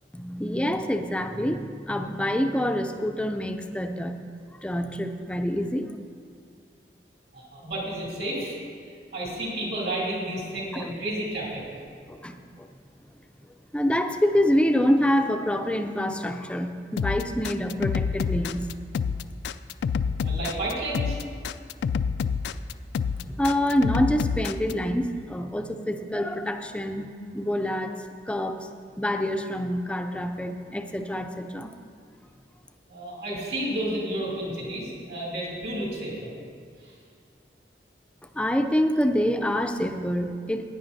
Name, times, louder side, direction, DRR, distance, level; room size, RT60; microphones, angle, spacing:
voice 1, 0.1-4.2 4.6-5.9 10.7-10.9 12.1-12.7 13.7-18.7 23.1-27.1 27.3-28.0 28.3-28.7 29.0-31.7 38.3-40.6, equal, 5° left, 6 dB, 0.4 m, -26 dB
voice 2, 7.3-8.6 9.1-11.6 20.2-21.2 32.9-36.3 36.8-36.9, right 1 dB, 65° right, -4 dB, 2.7 m, -31 dB
sound 1, 17.0-24.7, left 6 dB, 75° left, 0.3 m, -27 dB
15.5 x 9.6 x 2.7 m, 2.2 s
head